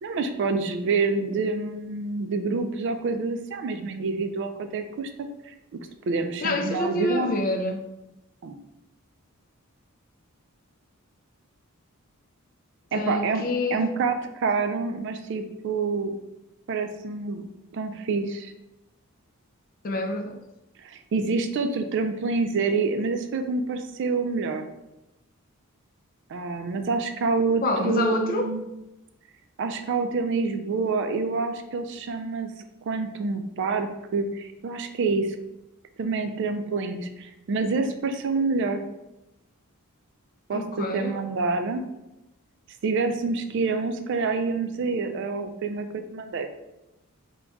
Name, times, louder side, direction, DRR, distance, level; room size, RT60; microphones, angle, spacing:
voice 1, 0.0-5.1 5.5-5.8 6.1-7.3 8.4-8.6 12.9-13.5 13.7-16.1 16.7-17.4 17.7-18.5 20.8-24.7 26.3-28.7 29.6-32.5 32.9-35.4 36.0-38.9 40.5-41.9 42.8-46.5, right 4 dB, 55° right, 7 dB, 0.3 m, -27 dB
voice 2, 6.4-7.8 12.9-13.8 19.8-20.4 27.6-28.5 40.5-41.2, left 2 dB, 40° left, 4 dB, 0.4 m, -27 dB
3.5 x 2.2 x 3.9 m, 0.94 s
head